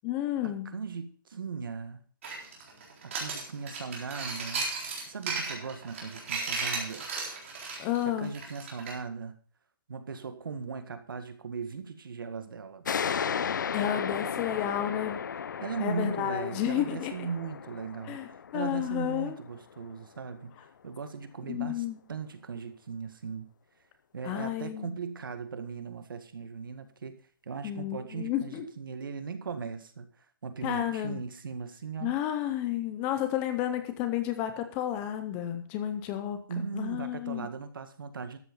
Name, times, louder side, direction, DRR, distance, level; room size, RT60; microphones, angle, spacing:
voice 1, 0.0-0.7 7.8-8.3 13.7-15.2 15.8-17.3 18.1-19.3 21.5-22.0 24.2-24.9 27.6-28.7 30.6-31.2 32.0-36.4 36.7-37.5, left 11 dB, 10° left, 8 dB, 0.5 m, -31 dB
voice 2, 0.7-2.0 3.0-4.7 5.0-7.1 8.1-9.3 9.9-12.9 15.6-18.2 18.5-20.5 20.8-23.5 24.1-32.1 36.5-38.4, right 5 dB, 70° right, 9 dB, 1.9 m, -38 dB
sound 1, 2.2-8.9, right 4 dB, 35° right, 3.9 m, -35 dB
sound 2, 12.8-20.0, left 7 dB, 60° left, 0.6 m, -35 dB
13.0 x 8.0 x 5.3 m, 0.43 s
hypercardioid pair, 180°, 12 cm